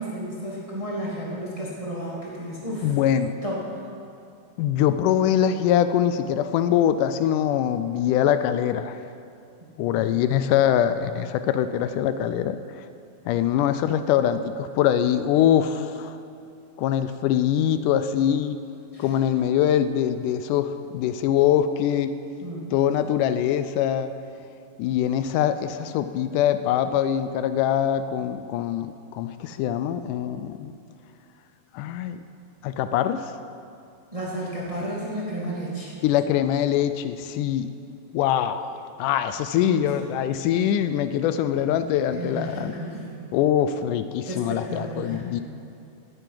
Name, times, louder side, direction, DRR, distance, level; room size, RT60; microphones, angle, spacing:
voice 1, 0.0-2.9 3.4-3.8 9.8-10.0 18.9-19.1 22.4-22.7 34.1-36.0 39.9-40.1 40.6-40.7 42.1-43.2 44.2-45.4, right 1 dB, 15° right, -5 dB, 1.8 m, -32 dB
voice 2, 2.8-3.3 4.6-9.0 9.8-12.9 13.3-16.2 16.8-18.6 19.0-22.1 22.7-24.1 24.8-30.7 31.7-32.2 32.6-33.3 36.0-37.7 38.1-38.7 39.0-42.7 43.3-45.4, left 10 dB, 85° left, 11 dB, 2.1 m, -23 dB
10.5 x 9.0 x 9.2 m, 2.5 s
omnidirectional pair, 3.6 m